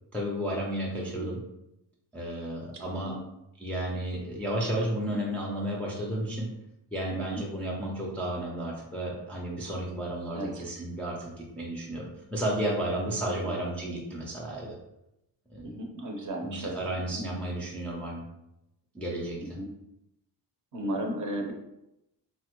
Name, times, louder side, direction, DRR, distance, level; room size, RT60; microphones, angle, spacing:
voice 1, 0.1-1.4 2.1-3.1 3.6-6.5 6.9-14.7 15.5-15.8 16.4-18.2 18.9-19.4, right 1 dB, 5° left, -3 dB, 0.3 m, -32 dB
voice 2, 2.7-3.2 7.1-7.4 10.3-10.7 13.4-13.5 15.6-16.8 17.1-17.2 19.4-19.7 20.7-21.5, right 1 dB, 45° right, 1 dB, 0.6 m, -35 dB
3.5 x 2.0 x 2.9 m, 0.86 s
cardioid pair, 135°, 44 cm